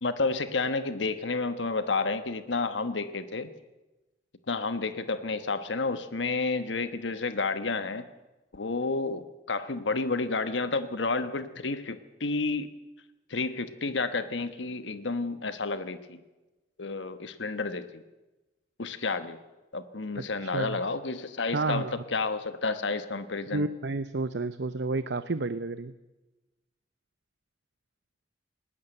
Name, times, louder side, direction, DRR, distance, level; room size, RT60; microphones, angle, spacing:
voice 1, 0.0-3.5 4.5-8.1 8.5-12.7 13.3-16.2 16.8-18.0 18.8-19.4 19.7-23.7, left 3 dB, 90° left, 11 dB, 1.2 m, -30 dB
voice 2, 20.1-20.8 21.5-21.9 23.5-25.9, right 3 dB, 70° right, 13 dB, 0.8 m, -31 dB
20.0 x 19.0 x 8.0 m, 1.1 s
head